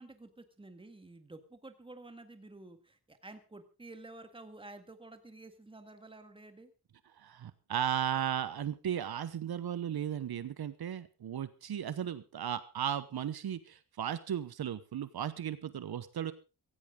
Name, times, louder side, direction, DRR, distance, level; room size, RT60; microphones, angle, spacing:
voice 1, 0.0-6.7, right 2 dB, 15° right, 8 dB, 1.8 m, -51 dB
voice 2, 7.2-16.3, right 9 dB, 75° right, 14 dB, 1.1 m, -35 dB
16.0 x 16.0 x 3.8 m, 0.30 s
wide cardioid pair, 160°, 38 cm